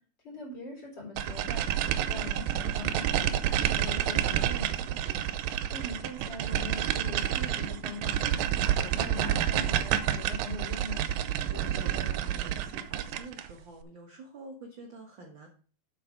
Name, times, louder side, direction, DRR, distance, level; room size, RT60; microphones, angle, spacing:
voice 1, 0.2-4.9 5.7-8.5 8.8-11.0, left 2 dB, 30° left, -2 dB, 4.3 m, -42 dB
sound 1, 1.2-13.5, right 10 dB, 80° right, 2.4 m, -29 dB
voice 2, 11.5-15.5, right 1 dB, 60° right, 1 dB, 1.2 m, -47 dB
8.0 x 6.6 x 5.1 m, 0.41 s
omnidirectional pair, 4.2 m